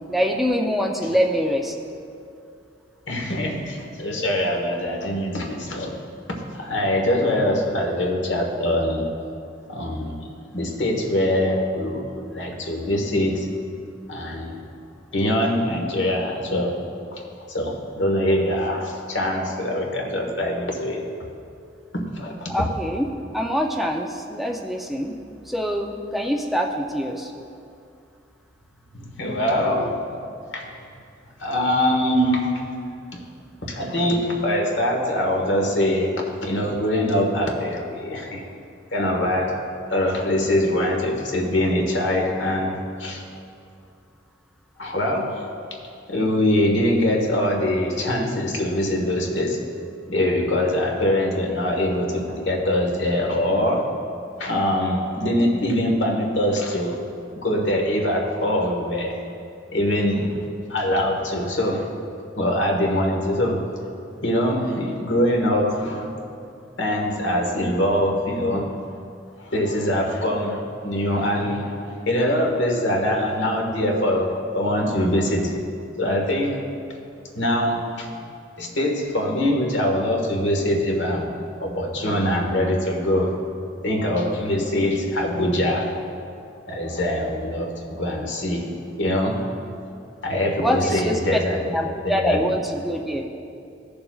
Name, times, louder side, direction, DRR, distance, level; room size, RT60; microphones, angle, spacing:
voice 1, 0.1-1.7 7.2-7.6 22.5-23.1 23.3-25.1 25.5-27.3 90.6-91.4 91.7-93.3, equal, ahead, 1 dB, 0.5 m, -24 dB
voice 2, 3.1-6.0 6.5-9.1 9.7-10.3 10.5-13.5 14.1-14.6 15.1-16.7 17.1-17.2 17.5-21.1 21.9-22.5 28.9-30.0 30.5-30.7 31.4-32.7 33.1-33.2 33.6-36.1 36.4-38.4 38.9-39.6 39.9-43.2 44.8-45.5 46.1-49.6 50.1-53.9 54.4-57.0 57.4-59.2 59.7-60.4 60.7-61.9 62.4-63.9 64.2-66.1 66.8-68.8 69.4-71.7 72.1-75.5 76.0-76.6 77.3-78.1 78.6-81.3 81.6-83.3 83.8-85.9 86.7-88.7 89.0-89.5 90.2-92.4, left 1 dB, 80° left, 1 dB, 1.4 m, -23 dB
16.0 x 6.8 x 2.4 m, 2.5 s
head